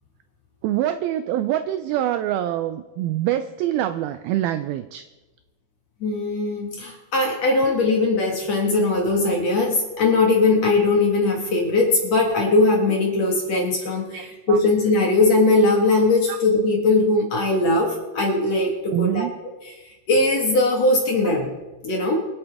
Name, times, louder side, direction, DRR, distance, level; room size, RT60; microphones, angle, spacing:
voice 1, 0.6-5.1 14.1-14.6 16.3-16.4 18.9-19.3, right 12 dB, 85° right, 10 dB, 2.1 m, -25 dB
voice 2, 6.0-19.3 20.1-21.5 21.8-22.2, left 2 dB, 50° left, 0 dB, 2.3 m, -20 dB
25.5 x 8.9 x 3.5 m, 1.1 s
omnidirectional pair, 4.8 m